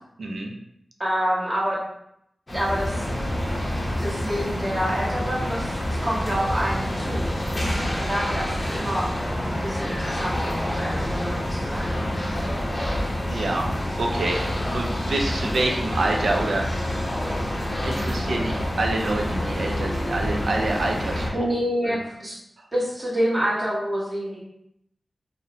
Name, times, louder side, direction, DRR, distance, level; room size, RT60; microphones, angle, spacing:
voice 1, 0.2-0.5 13.3-13.7 14.0-16.6 17.5-21.5 21.8-21.9, right 2 dB, 80° right, 1 dB, 0.4 m, -27 dB
voice 2, 1.0-1.8 2.5-3.0 4.0-7.3 7.9-9.1 9.5-12.0 21.3-22.4 22.7-24.4, equal, 25° right, -7 dB, 1.0 m, -27 dB
sound 1, 2.5-21.3, left 1 dB, 30° left, 0.6 m, -27 dB
2.5 x 2.0 x 2.7 m, 0.75 s
wide cardioid pair, 80°, 0 cm